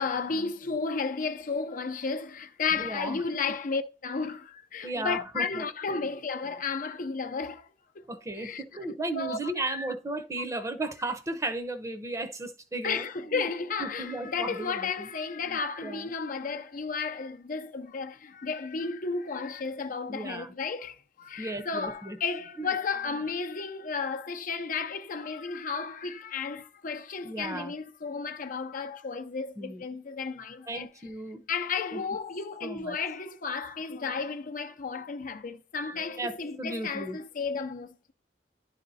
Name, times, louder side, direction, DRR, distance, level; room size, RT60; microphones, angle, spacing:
voice 1, 0.0-7.7 7.9-8.0 8.3-9.9 12.8-30.9 31.5-38.1, left 5 dB, 50° left, 0.6 m, -33 dB
voice 2, 2.7-3.2 3.5-3.6 4.8-6.1 8.1-13.5 13.8-15.1 15.4-16.1 20.1-20.5 21.4-22.2 22.6-22.7 27.2-27.7 29.6-29.9 30.7-31.5 31.9-32.0 32.6-33.0 36.2-37.2, right 2 dB, 20° right, 0.8 m, -35 dB
11.0 x 4.2 x 4.1 m
head